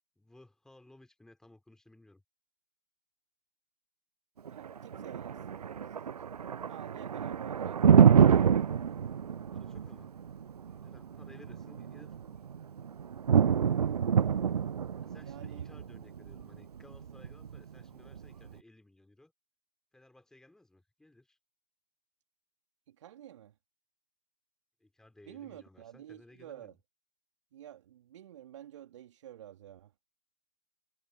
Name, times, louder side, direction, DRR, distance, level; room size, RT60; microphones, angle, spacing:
voice 1, 0.2-2.2 9.3-10.1 10.8-12.5 14.9-19.3 19.9-21.4 24.8-26.8, left 2 dB, 5° left, 4.3 m, -58 dB
voice 2, 4.4-6.2 6.7-8.8 15.2-15.7 22.9-23.5 25.3-26.7 27.5-29.9, right 11 dB, 45° right, 2.2 m, -49 dB
Thunder, 4.5-18.5, right 7 dB, 65° right, 0.5 m, -27 dB
figure-of-eight pair, 125°, 21 cm